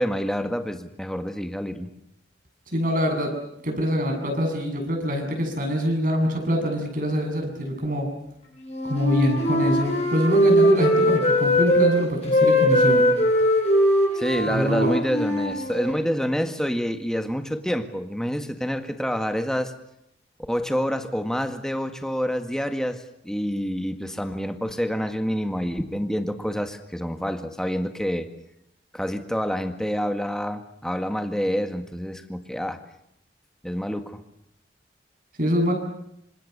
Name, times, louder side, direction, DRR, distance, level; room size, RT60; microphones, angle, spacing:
voice 1, 0.0-1.9 14.1-19.7 20.5-28.3 28.9-32.8 33.6-34.2, equal, 5° left, 7 dB, 1.7 m, -27 dB
voice 2, 2.7-3.3 3.6-8.1 8.9-13.1 14.5-15.0 35.4-35.7, equal, 50° right, 3 dB, 7.5 m, -24 dB
Wind instrument woodwind instrument, 8.6-11.9 12.2-16.0, equal, 35° left, 7.3 m, -20 dB
28.0 x 26.5 x 6.8 m, 0.79 s
head